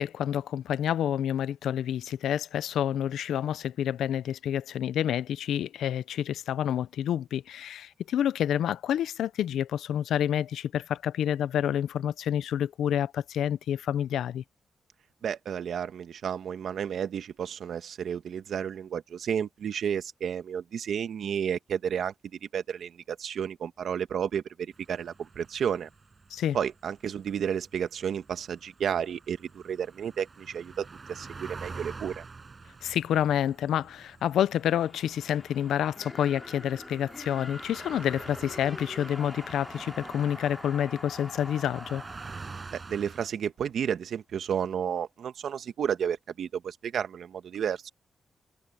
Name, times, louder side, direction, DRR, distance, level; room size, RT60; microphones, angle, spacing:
voice 1, 0.0-14.4 26.3-26.6 32.8-42.0, left 10 dB, 90° left, 0.6 m, -28 dB
voice 2, 15.2-22.1 22.5-25.9 26.5-32.2 42.7-47.9, right 8 dB, 75° right, 1.4 m, -32 dB
sound 1, 24.7-43.3, right 4 dB, 40° right, 7.5 m, -47 dB
sound 2, 34.4-43.2, left 2 dB, 25° left, 4.4 m, -45 dB
cardioid pair, 65°, 0 cm